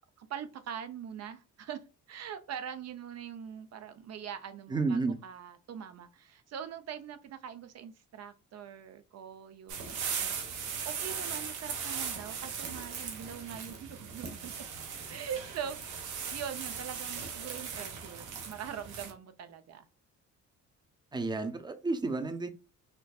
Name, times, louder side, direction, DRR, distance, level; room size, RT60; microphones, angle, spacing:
voice 1, 0.2-14.5 15.1-16.0 16.3-19.9, right 8 dB, 60° right, 0.6 m, -43 dB
voice 2, 4.7-5.2 21.1-22.5, right 3 dB, 15° right, 0.6 m, -31 dB
sound 1, 9.7-19.1, right 6 dB, 80° right, 1.1 m, -38 dB
4.4 x 2.5 x 2.3 m
cardioid pair, 90°, 30 cm